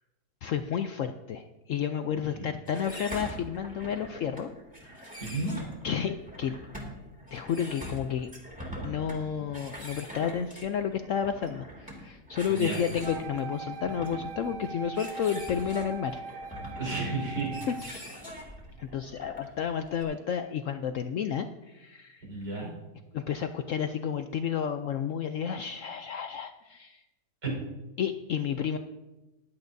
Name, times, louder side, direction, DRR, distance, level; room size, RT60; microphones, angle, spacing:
voice 1, 0.4-4.5 4.8-5.2 5.8-6.6 7.3-8.3 8.8-16.2 17.7-18.1 18.8-22.3 23.1-27.0 28.0-28.8, left 8 dB, 70° left, 8 dB, 0.7 m, -31 dB
sound 1, 2.7-20.0, equal, 5° right, 2.2 m, -43 dB
voice 2, 5.2-5.5 12.5-12.8 16.8-17.5 18.3-18.5 22.2-22.7 27.4-27.5, right 3 dB, 80° right, -4 dB, 4.5 m, -32 dB
Wind instrument woodwind instrument, 13.0-17.9, right 3 dB, 60° right, 0.5 m, -40 dB
15.5 x 11.0 x 2.6 m, 1.1 s
omnidirectional pair, 1.8 m